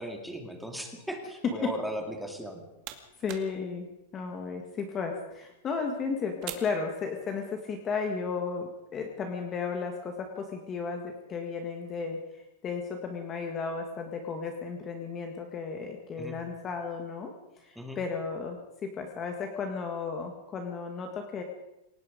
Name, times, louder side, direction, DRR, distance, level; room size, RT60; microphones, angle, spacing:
voice 1, 0.0-2.6 16.2-16.3 17.8-18.0, equal, ahead, 3 dB, 2.3 m, -37 dB
sound 1, 2.3-7.6, right 12 dB, 30° right, 2.1 m, -48 dB
voice 2, 3.2-3.9 4.1-21.4, left 5 dB, 15° left, 4 dB, 1.8 m, -34 dB
27.5 x 18.0 x 5.2 m, 0.92 s
supercardioid pair, 175°, 0 cm